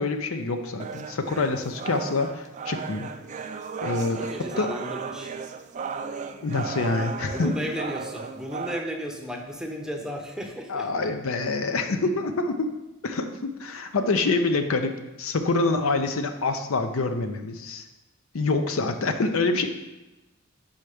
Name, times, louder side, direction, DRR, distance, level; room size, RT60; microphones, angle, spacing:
voice 1, 0.0-3.1 3.8-4.3 4.6-4.7 6.4-7.5 10.7-12.7 13.0-17.8 18.3-19.7, left 3 dB, 80° left, 7 dB, 0.6 m, -26 dB
sound 1, 0.8-8.8, right 5 dB, 35° right, 0.3 m, -35 dB
voice 2, 4.1-5.3 7.2-10.9 11.7-11.8 14.1-14.2, equal, 5° right, 2 dB, 0.6 m, -34 dB
5.6 x 4.5 x 4.9 m, 1.0 s
head